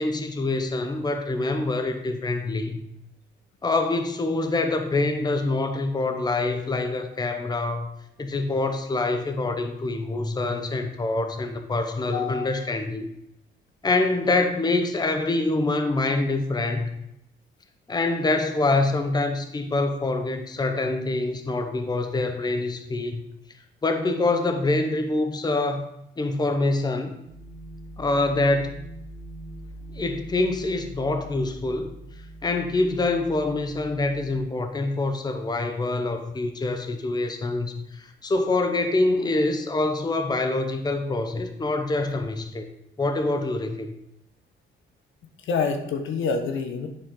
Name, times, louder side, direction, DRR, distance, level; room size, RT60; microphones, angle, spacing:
voice 1, 0.0-2.8 3.6-7.9 8.2-13.1 13.8-16.9 17.9-23.2 23.8-25.9 26.2-27.1 28.0-28.7 29.9-31.9 32.4-42.7 43.0-43.9, left 2 dB, 20° left, 6 dB, 0.8 m, -25 dB
voice 2, 12.1-12.5 45.4-46.9, left 5 dB, 75° left, 6 dB, 1.0 m, -27 dB
sound 1, 27.3-34.4, right 1 dB, 80° right, 1.3 m, -42 dB
9.9 x 4.3 x 3.7 m, 0.79 s
cardioid pair, 90°, 20 cm